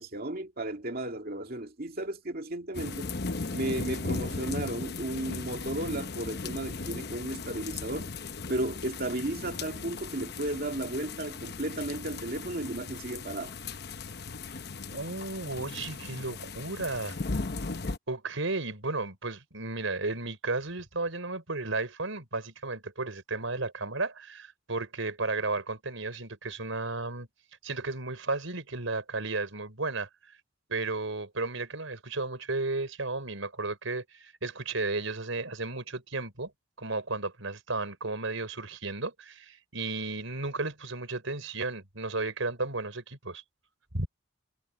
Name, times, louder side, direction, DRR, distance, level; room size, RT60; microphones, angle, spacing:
voice 1, 0.0-3.1 3.5-8.1 8.5-13.6, right 1 dB, 50° right, 2.4 m, -34 dB
sound 1, 2.7-18.0, left 3 dB, 55° left, 0.9 m, -37 dB
voice 2, 14.9-17.2 18.1-27.3 27.6-30.1 30.7-36.5 36.8-43.4 43.9-44.1, right 3 dB, 80° right, 4.4 m, -33 dB
head